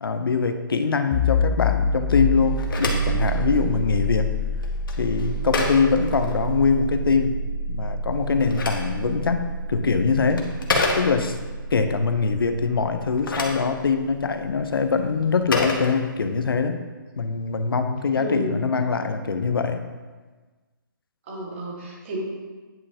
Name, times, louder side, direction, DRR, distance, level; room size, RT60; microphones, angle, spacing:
voice 1, 0.0-4.3 5.0-7.4 7.7-10.5 10.9-11.4 11.7-16.8 17.2-19.8, left 5 dB, 90° left, 8 dB, 0.7 m, -23 dB
sound 1, 1.1-12.5, left 1 dB, 15° left, 0.9 m, -27 dB
Telephone, 2.4-6.9 8.1-11.5 13.0-16.6, left 3 dB, 70° left, 1.3 m, -31 dB
voice 2, 18.1-18.7 21.3-22.2, right 1 dB, 35° right, -2 dB, 1.7 m, -31 dB
9.4 x 5.5 x 2.8 m, 1.3 s
hypercardioid pair, 165°, 12 cm